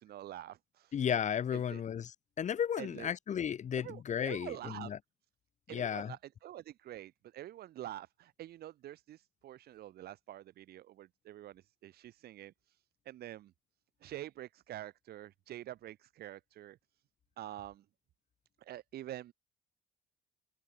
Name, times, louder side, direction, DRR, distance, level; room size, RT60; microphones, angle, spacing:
voice 1, 0.0-1.0 1.5-1.8 2.8-3.1 3.7-4.9 5.7-13.5 14.0-17.0 17.4-17.9 18.6-19.3, right 13 dB, 70° right, 5.8 m, -47 dB
voice 2, 0.9-2.1 2.4-5.0 5.7-6.1, left 8 dB, 45° left, 2.5 m, -34 dB
cardioid pair, 110°, 17 cm